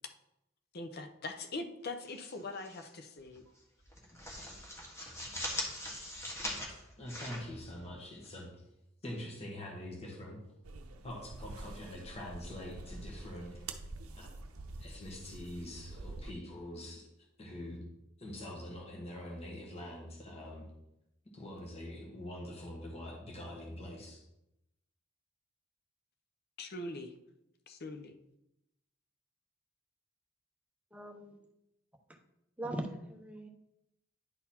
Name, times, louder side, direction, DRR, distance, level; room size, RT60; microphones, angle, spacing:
voice 1, 0.7-3.4 26.6-27.1 27.7-28.2, left 2 dB, 50° left, 7 dB, 0.6 m, -42 dB
sound 1, 2.0-2.9 3.2-3.4 3.8-8.3, left 1 dB, 15° left, 1.2 m, -42 dB
voice 2, 7.0-8.5 9.0-10.4 11.0-13.7 14.1-14.3 14.8-17.0 17.4-17.8 18.2-20.6 21.3-24.2, left 1 dB, 30° left, -2 dB, 1.4 m, -44 dB
sound 2, 10.6-16.3, right 2 dB, 90° right, 0.6 m, -47 dB
voice 3, 30.9-31.4 32.6-33.5, right 1 dB, 5° right, 2 dB, 0.7 m, -40 dB
9.9 x 4.0 x 4.3 m, 0.86 s
head